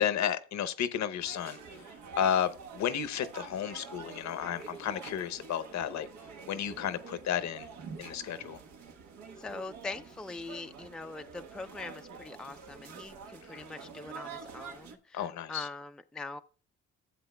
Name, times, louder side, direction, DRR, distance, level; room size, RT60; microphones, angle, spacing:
voice 1, 0.0-1.6 2.2-6.1 6.5-7.7 8.0-8.6 13.5-13.6 15.1-15.7, left 9 dB, 65° left, 0.8 m, -32 dB
sound 1, 1.2-14.9, right 5 dB, 85° right, 1.3 m, -47 dB
voice 2, 9.4-16.4, left 3 dB, 5° left, 0.4 m, -42 dB
14.5 x 7.8 x 2.2 m
cardioid pair, 90°, 30 cm